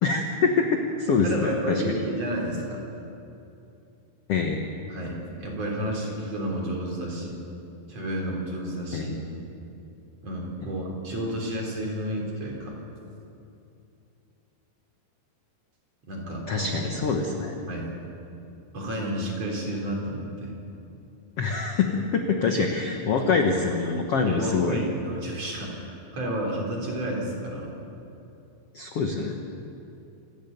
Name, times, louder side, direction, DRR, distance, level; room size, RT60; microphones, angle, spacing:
voice 1, 0.0-2.0 4.3-4.6 8.9-9.1 16.5-17.5 21.4-24.8 28.7-29.3, left 4 dB, 60° left, 3 dB, 1.6 m, -25 dB
voice 2, 1.2-2.9 4.9-7.4 7.9-9.2 10.2-12.8 16.1-16.7 17.7-17.9 18.7-20.6 24.3-27.7, right 1 dB, 45° right, -1 dB, 4.5 m, -31 dB
27.0 x 12.5 x 9.3 m, 2.7 s
omnidirectional pair, 4.4 m